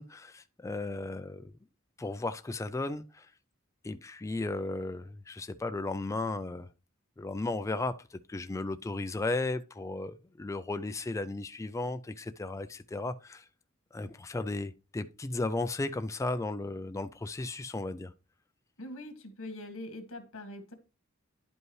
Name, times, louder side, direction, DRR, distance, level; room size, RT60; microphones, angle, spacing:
voice 1, 0.0-1.5 2.0-3.3 3.8-6.7 7.2-13.5 13.9-18.1, left 2 dB, 15° left, 0.3 m, -35 dB
voice 2, 18.8-20.7, left 1 dB, 65° left, 1.9 m, -43 dB
11.0 x 5.3 x 3.1 m
head